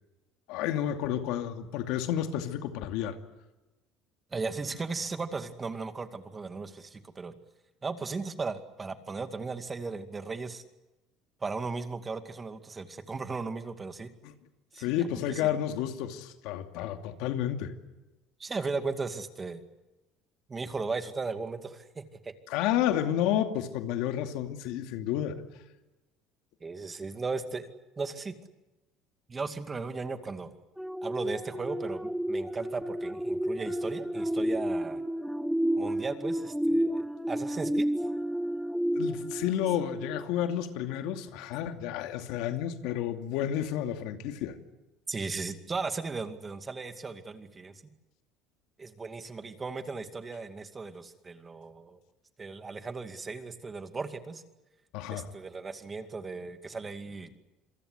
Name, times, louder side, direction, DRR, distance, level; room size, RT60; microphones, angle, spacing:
voice 1, 0.5-3.2 14.2-14.3 14.8-17.7 22.5-25.3 38.9-44.6 54.9-55.3, left 10 dB, 75° left, 6 dB, 2.5 m, -31 dB
voice 2, 4.3-7.3 7.8-10.6 11.4-14.1 14.7-15.5 18.4-19.6 20.5-22.3 26.6-27.7 28.0-28.3 29.3-30.5 31.0-35.0 35.8-37.9 45.1-47.7 48.8-52.0 52.4-54.4 55.1-57.3, right 4 dB, 20° right, 8 dB, 2.3 m, -36 dB
sound 1, 30.8-40.6 41.1-41.3, equal, ahead, 1.0 m, -31 dB
27.5 x 23.0 x 8.0 m, 1.0 s
cardioid pair, 120°, 0 cm